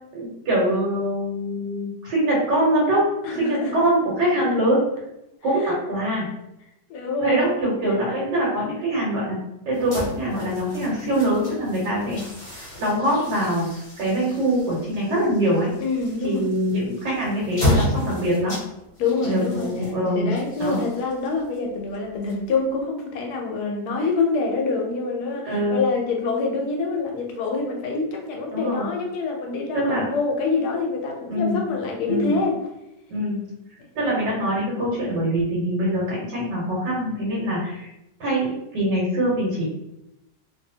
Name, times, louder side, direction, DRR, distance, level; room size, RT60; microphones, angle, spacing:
voice 1, 0.1-4.8 5.4-6.3 7.2-9.4 9.6-12.2 12.6-15.7 16.2-18.5 19.2-20.3 20.6-20.8 25.4-25.8 28.5-28.9 29.7-30.1 31.3-31.7 32.1-32.4 33.1-33.4 33.9-37.9 38.2-39.6, right 1 dB, 80° right, -5 dB, 1.4 m, -23 dB
voice 2, 3.2-3.8 5.6-5.7 6.9-7.4 8.5-8.8 15.8-16.5 19.0-19.8 20.1-32.6, left 4 dB, 75° left, 1 dB, 1.0 m, -26 dB
sound 1, 9.7-22.8, left 1 dB, 35° left, 0.8 m, -32 dB
2.7 x 2.6 x 2.7 m, 0.88 s
omnidirectional pair, 1.9 m